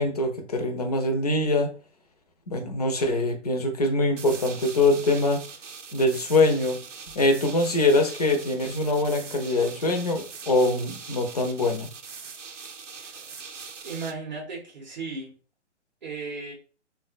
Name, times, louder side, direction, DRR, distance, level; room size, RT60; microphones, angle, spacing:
voice 1, 0.0-1.7 2.5-5.4 5.9-6.8 7.2-11.9, left 2 dB, 35° left, 4 dB, 0.4 m, -23 dB
sound 1, 4.2-14.1, right 5 dB, 85° right, 0.6 m, -42 dB
voice 2, 13.0-13.3 13.8-15.3 16.0-16.5, right 4 dB, 40° right, -1 dB, 0.6 m, -36 dB
3.6 x 2.1 x 2.4 m, 0.37 s
figure-of-eight pair, 135°, 36 cm